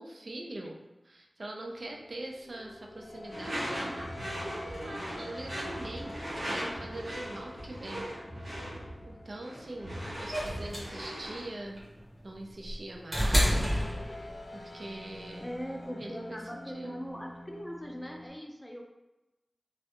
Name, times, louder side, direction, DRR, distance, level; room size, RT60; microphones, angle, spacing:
voice 1, 0.0-4.1 4.4-8.1 8.4-8.5 9.0-11.8 12.2-13.9 14.5-15.5 16.0-17.0, right 1 dB, 70° right, 0 dB, 0.5 m, -42 dB
sound 1, 1.9-18.3, left 1 dB, 70° left, 0.5 m, -48 dB
Door / Screech, 3.3-11.5, equal, 85° right, 1.0 m, -39 dB
sound 2, 10.3-14.6 15.8-15.9, equal, 35° right, 1.4 m, -29 dB
voice 2, 15.4-18.8, equal, 15° left, 1 dB, 0.5 m, -41 dB
3.2 x 2.3 x 2.8 m, 1.0 s
wide cardioid pair, 50°, 0 cm